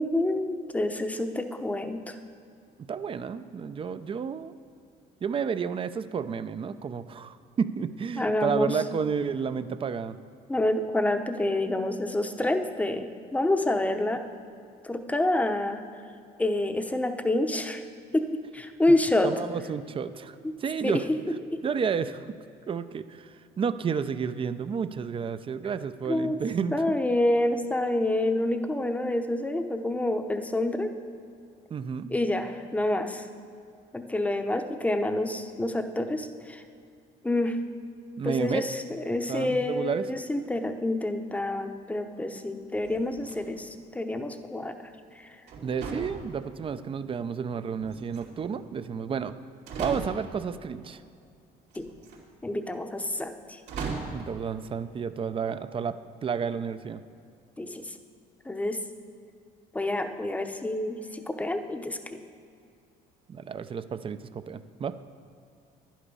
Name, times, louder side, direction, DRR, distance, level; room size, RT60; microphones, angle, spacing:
voice 1, 0.0-2.1 8.2-8.7 10.5-14.2 14.8-15.8 16.4-17.8 18.1-18.3 18.5-19.3 20.4-20.5 20.8-21.0 21.5-21.6 26.1-26.4 26.7-30.9 32.1-33.3 33.9-36.6 37.2-37.6 38.2-44.7 45.2-45.4 51.7-51.9 52.4-53.6 57.6-58.0 58.5-58.8 59.7-62.2, left 1 dB, 10° left, 7 dB, 0.8 m, -28 dB
voice 2, 2.9-4.5 5.2-10.2 19.2-21.1 21.6-22.3 22.7-27.0 31.7-32.1 38.2-38.6 39.3-40.0 45.6-49.3 49.8-51.0 54.1-57.0 63.3-64.9, right 6 dB, 30° right, 12 dB, 0.5 m, -31 dB
sound 1, 42.8-43.7 45.5-46.8 47.8-48.6 49.2-49.3 49.7-50.5 51.7-52.2 53.7-54.3, right 4 dB, 80° right, 2.7 m, -37 dB
11.0 x 10.5 x 5.4 m, 2.6 s
cardioid pair, 110°, 17 cm